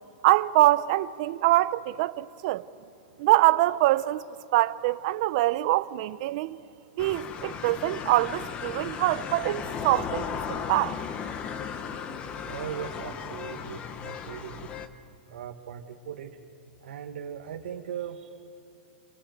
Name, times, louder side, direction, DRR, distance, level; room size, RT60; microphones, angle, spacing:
voice 1, 0.2-2.6 3.2-4.2 4.5-6.6 7.0-11.0, right 17 dB, 35° right, 0.6 m, -24 dB
sound 1, 7.0-14.9, left 7 dB, 20° left, 0.9 m, -36 dB
voice 2, 12.4-14.7 15.3-16.4 16.8-18.5, right 8 dB, 70° right, 1.6 m, -39 dB
28.0 x 27.0 x 7.8 m
supercardioid pair, 175°, 6 cm